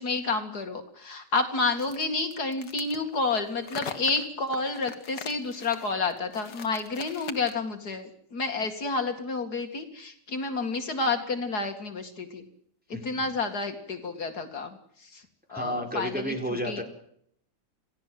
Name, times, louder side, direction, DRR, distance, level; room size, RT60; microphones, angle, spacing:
voice 1, 0.0-12.4 13.0-14.8 15.1-15.2 15.5-16.3 16.6-16.8, left 3 dB, 65° left, 6 dB, 2.7 m, -30 dB
sound 1, 1.8-7.7, left 6 dB, 90° left, 2.2 m, -42 dB
voice 2, 12.9-13.2 15.5-16.8, equal, 5° right, 3 dB, 4.3 m, -32 dB
28.0 x 17.0 x 7.7 m, 0.68 s
omnidirectional pair, 1.8 m